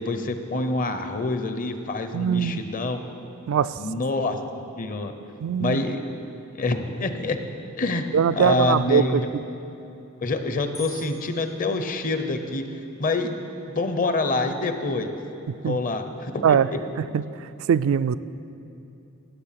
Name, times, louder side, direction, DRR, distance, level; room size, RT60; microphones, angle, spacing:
voice 1, 0.0-3.0 3.8-4.4 4.8-5.1 5.6-6.0 6.5-7.4 7.8-8.1 8.4-9.2 10.2-12.6 13.0-13.4 13.7-15.2 15.7-16.6, left 2 dB, 40° left, 8 dB, 0.7 m, -26 dB
voice 2, 2.1-2.6 3.5-3.8 5.4-5.8 8.1-9.2 15.6-15.8 16.4-16.7 17.0-18.2, right 7 dB, 70° right, 15 dB, 0.3 m, -22 dB
sound 1, 10.7-12.5, equal, 90° left, 1.9 m, -45 dB
17.0 x 6.8 x 5.8 m, 2.8 s
head